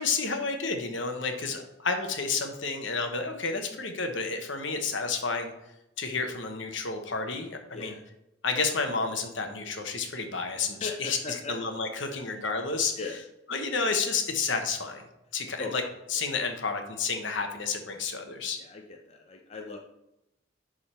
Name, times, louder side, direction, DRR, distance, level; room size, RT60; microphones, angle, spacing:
voice 1, 0.0-5.5 6.0-7.9 8.4-12.9 13.5-15.0 15.3-15.8 16.1-18.6, left 4 dB, 70° left, 5 dB, 1.1 m, -30 dB
voice 2, 10.8-11.5 12.1-12.2 13.0-13.2 15.6-15.7 18.6-19.8, left 3 dB, 30° left, 2 dB, 0.6 m, -39 dB
11.0 x 3.7 x 4.4 m, 0.89 s
head